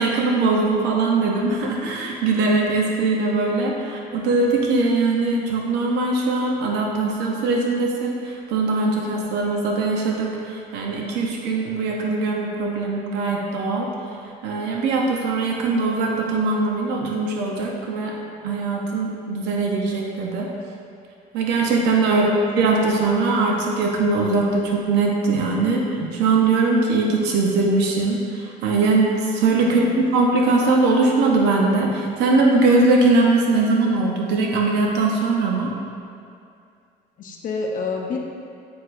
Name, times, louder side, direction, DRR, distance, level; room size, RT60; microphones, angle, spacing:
voice 1, 0.0-13.9 14.4-18.2 18.4-20.5 21.3-29.8 30.1-35.7, right 3 dB, 85° right, -1 dB, 0.7 m, -21 dB
voice 2, 29.6-30.0 37.2-38.2, left 4 dB, 50° left, 0 dB, 0.7 m, -29 dB
8.2 x 4.6 x 2.5 m, 2.4 s
cardioid pair, 110°, 17 cm